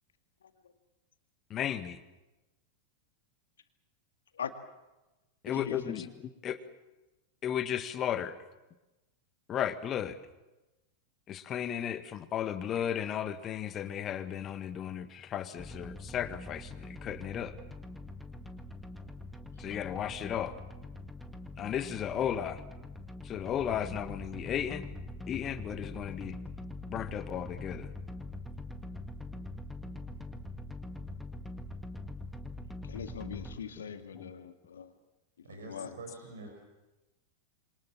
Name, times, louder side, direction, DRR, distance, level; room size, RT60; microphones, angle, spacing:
voice 1, 1.5-2.0 5.4-6.6 7.4-8.4 9.5-10.2 11.3-17.6 19.6-20.6 21.6-22.6 23.2-24.9 25.3-26.4 26.9-27.9 34.1-34.5, left 9 dB, 30° left, 12 dB, 1.7 m, -34 dB
voice 2, 5.5-6.1 32.8-34.9 35.4-36.0, left 7 dB, 65° left, 8 dB, 2.0 m, -41 dB
sound 1, 15.6-33.6, left 2 dB, ahead, 1.9 m, -43 dB
voice 3, 35.4-36.5, right 3 dB, 65° right, 3 dB, 5.4 m, -46 dB
27.0 x 25.0 x 7.3 m, 1.0 s
figure-of-eight pair, 90°, 0 cm